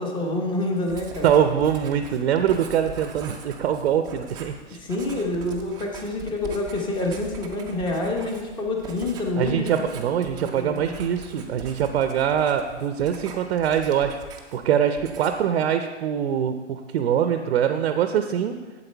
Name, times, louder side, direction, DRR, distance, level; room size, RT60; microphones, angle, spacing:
voice 1, 0.0-1.3 4.7-9.9 10.3-10.9, left 2 dB, 15° left, 1 dB, 1.1 m, -27 dB
Writing, 0.9-14.7 15.0-15.5, right 5 dB, 10° right, 0.5 m, -42 dB
voice 2, 1.2-4.8 9.4-14.2 14.5-18.6, right 9 dB, 55° right, 8 dB, 0.6 m, -23 dB
8.0 x 7.7 x 4.5 m, 1.3 s
hypercardioid pair, 145°, 36 cm